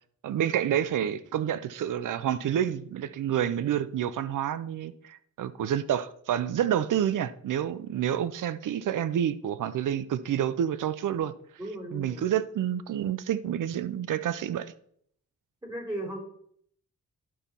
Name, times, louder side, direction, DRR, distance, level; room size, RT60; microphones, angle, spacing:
voice 1, 0.2-11.3 11.9-14.7, right 10 dB, 85° right, 0.6 m, -28 dB
voice 2, 11.6-12.3 15.6-16.2, right 1 dB, 15° right, 3.6 m, -36 dB
11.0 x 4.3 x 5.4 m
cardioid pair, 95°, 31 cm